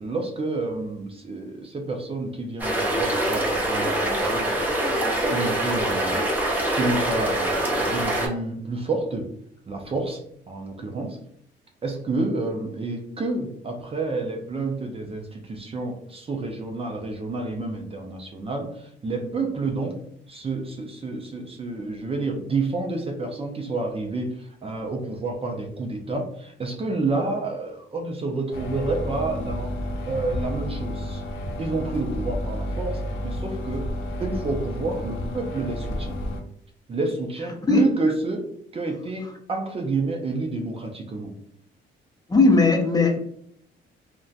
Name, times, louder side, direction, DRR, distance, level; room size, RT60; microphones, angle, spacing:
voice 1, 0.0-6.2 6.7-9.3 9.7-11.2 11.8-20.0 20.3-29.7 30.1-31.2 31.6-33.9 34.2-36.2 36.9-38.4 38.7-41.3, right 3 dB, 30° right, 2 dB, 0.5 m, -29 dB
sound 1, 2.6-8.3, right 1 dB, 10° right, 0.8 m, -24 dB
sound 2, 28.5-36.4, equal, 85° left, 0.5 m, -31 dB
voice 2, 42.3-43.2, left 3 dB, 20° left, 1 dB, 0.5 m, -17 dB
2.6 x 2.2 x 2.4 m, 0.68 s
cardioid pair, 90°, 20 cm